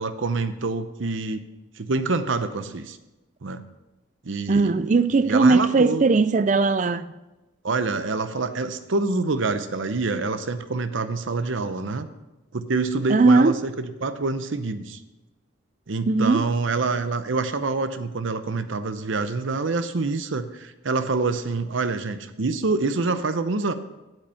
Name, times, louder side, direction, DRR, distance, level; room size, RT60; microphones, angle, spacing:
voice 1, 0.0-1.4 1.8-3.0 3.4-3.6 4.2-4.9 5.2-6.0 7.6-12.1 12.5-15.0 15.9-23.7, right 3 dB, 75° right, 0.7 m, -26 dB
voice 2, 4.5-7.1 13.1-13.7 16.1-16.5, right 3 dB, 40° right, 0.4 m, -19 dB
8.9 x 7.9 x 5.7 m
head